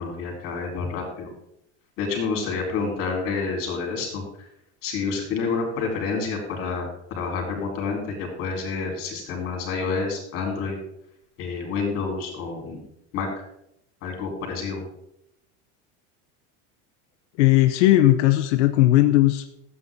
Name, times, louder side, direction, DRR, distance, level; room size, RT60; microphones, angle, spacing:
voice 1, 0.0-1.3 2.0-4.5 4.8-6.9 7.1-10.8 11.4-12.8 13.1-13.5 14.0-14.8, left 4 dB, 40° left, 1 dB, 3.8 m, -28 dB
voice 2, 17.4-19.5, left 15 dB, 90° left, 6 dB, 0.8 m, -17 dB
13.5 x 8.5 x 3.7 m, 0.79 s
cardioid pair, 170°, 34 cm